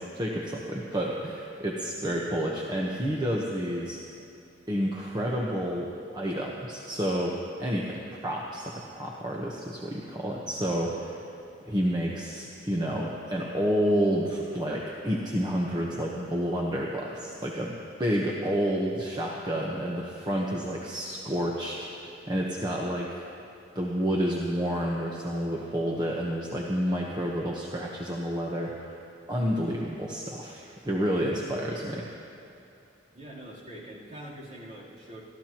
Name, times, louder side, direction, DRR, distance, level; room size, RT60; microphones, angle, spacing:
voice 1, 0.0-4.0 4.7-11.2 11.6-23.2 23.7-28.9 29.3-32.1, equal, 20° right, -3 dB, 1.1 m, -30 dB
voice 2, 33.1-35.2, right 1 dB, 45° right, -7 dB, 3.6 m, -44 dB
29.5 x 14.0 x 3.0 m, 2.8 s
head